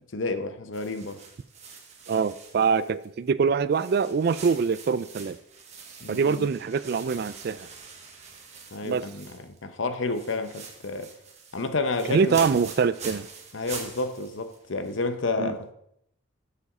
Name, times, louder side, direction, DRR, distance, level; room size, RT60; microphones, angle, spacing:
voice 1, 0.1-1.2 6.0-6.5 8.7-11.1 11.5-12.5 13.5-15.7, left 3 dB, 75° left, 0.8 m, -30 dB
sound 1, 0.7-3.3 3.7-9.6 9.9-15.1, right 5 dB, 35° right, 1.2 m, -44 dB
voice 2, 2.1-5.4 6.1-7.7 8.8-9.1 12.1-13.3 15.4-15.5, right 5 dB, 50° right, 0.3 m, -24 dB
7.2 x 6.8 x 4.9 m
head